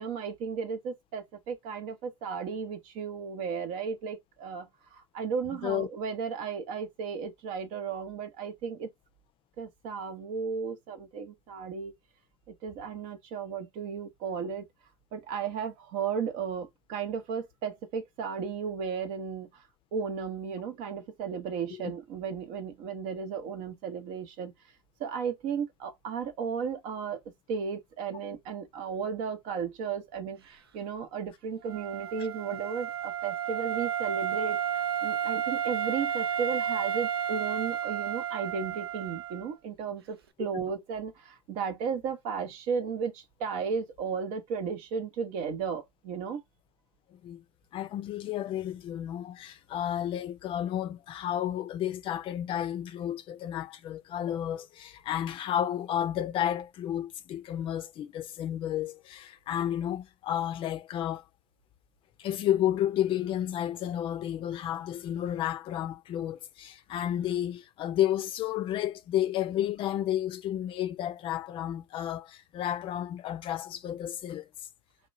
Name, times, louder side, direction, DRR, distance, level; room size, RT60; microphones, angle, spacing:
voice 1, 0.0-8.9 9.6-11.9 12.5-14.7 15.1-19.6 19.9-24.5 25.0-46.4, right 6 dB, 60° right, 0.7 m, -34 dB
Wind instrument woodwind instrument, 31.6-39.5, right 9 dB, 90° right, 0.4 m, -32 dB
voice 2, 47.1-47.4 47.7-61.2 62.2-74.5, left 11 dB, 45° left, 0.4 m, -31 dB
2.9 x 2.2 x 2.5 m
hypercardioid pair, 75°, 12 cm